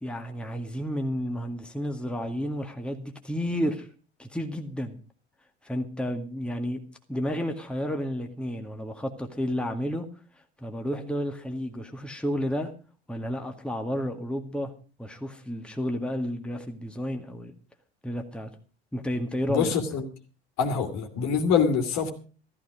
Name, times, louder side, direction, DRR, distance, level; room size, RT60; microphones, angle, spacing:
voice 1, 0.0-3.9 4.2-5.0 5.6-6.8 7.1-10.1 10.6-12.7 13.1-14.7 15.0-17.5 18.0-18.5 18.9-19.7, equal, 5° left, 4 dB, 2.0 m, -31 dB
voice 2, 19.5-20.0 20.6-22.1, left 6 dB, 55° left, 5 dB, 2.8 m, -25 dB
14.0 x 13.5 x 4.9 m, 0.38 s
hypercardioid pair, 70°, 33 cm